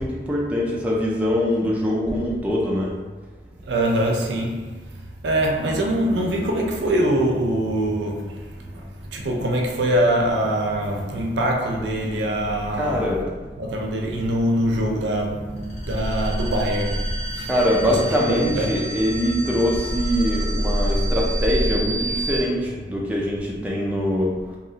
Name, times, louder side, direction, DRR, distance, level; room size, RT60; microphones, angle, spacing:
voice 1, 0.0-2.9 12.7-13.3 17.4-24.3, equal, 10° right, 0.3 m, -23 dB
voice 2, 3.6-13.1 13.6-17.5 17.8-19.5, right 1 dB, 85° right, 0.5 m, -24 dB
sound 1, 15.6-22.4, equal, 40° left, 0.7 m, -27 dB
2.7 x 2.4 x 2.7 m
head